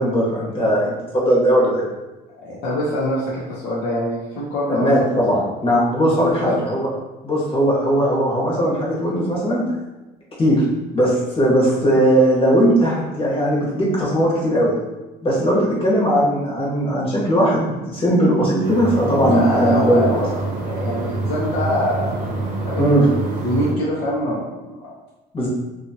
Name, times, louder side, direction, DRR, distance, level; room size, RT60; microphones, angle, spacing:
voice 1, 0.0-1.8 4.7-6.9 7.2-9.6 10.4-10.6 10.9-14.7 15.2-20.2 22.8-23.1 25.3-25.5, equal, 35° left, -5 dB, 1.1 m, -18 dB
voice 2, 2.4-5.1 6.2-6.5 19.2-22.3 22.6-24.4 24.8-24.9, left 1 dB, 75° left, -8 dB, 0.8 m, -24 dB
sound 1, 18.6-23.7, right 2 dB, 50° right, 0.7 m, -26 dB
2.6 x 2.4 x 2.7 m, 1.1 s
cardioid pair, 110°, 17 cm